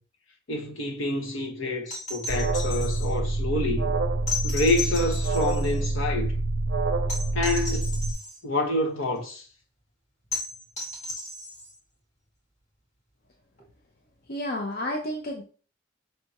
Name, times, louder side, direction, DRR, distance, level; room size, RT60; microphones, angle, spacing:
voice 1, 0.5-3.9 4.4-6.3 7.3-7.9 8.4-9.5, left 2 dB, 75° left, 1.2 m, -27 dB
sound 1, 1.9-3.1 4.3-5.8 7.1-8.4 10.3-11.8 13.6-13.7, left 3 dB, 35° left, 1.7 m, -35 dB
Alarm, 2.3-8.1, right 2 dB, 60° right, 0.5 m, -26 dB
voice 2, 14.3-15.4, left 1 dB, 50° left, 0.6 m, -31 dB
5.3 x 3.4 x 2.9 m
head